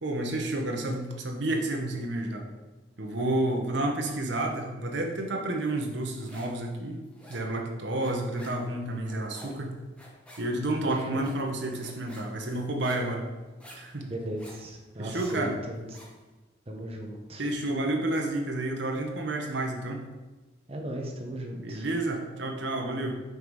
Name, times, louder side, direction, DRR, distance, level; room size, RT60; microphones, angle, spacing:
voice 1, 0.0-2.5 3.0-7.0 7.3-9.8 10.4-13.3 13.7-14.1 15.0-15.6 17.4-20.0 21.5-23.2, right 1 dB, 65° right, 2 dB, 0.9 m, -30 dB
sound 1, 5.8-6.6 6.9-16.2, equal, 5° left, 1.0 m, -50 dB
voice 2, 14.0-15.8 16.7-17.5 20.7-21.8, right 1 dB, 30° right, 1 dB, 0.8 m, -37 dB
5.3 x 4.0 x 4.7 m, 1.2 s
head